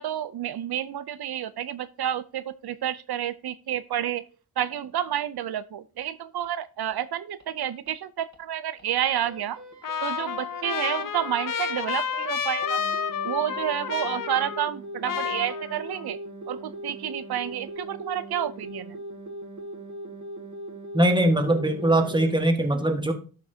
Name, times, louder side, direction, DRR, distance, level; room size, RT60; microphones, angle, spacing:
voice 1, 0.0-4.2 4.6-9.6 10.0-12.8 13.2-16.2 16.5-19.0, right 11 dB, 85° right, 14 dB, 0.5 m, -30 dB
sound 1, 6.0-6.1 6.4-6.5 6.9-7.0 7.4-7.5 7.9-8.0 8.3-8.4 8.8-8.9 9.2-22.4, right 1 dB, 50° right, 1.7 m, -40 dB
Trumpet, 9.8-14.8 15.0-16.1, left 7 dB, 60° left, 0.7 m, -30 dB
voice 2, 20.9-23.1, right 1 dB, 10° right, 5 dB, 1.5 m, -21 dB
12.0 x 5.9 x 2.7 m, 0.36 s
wide cardioid pair, 85°, 37 cm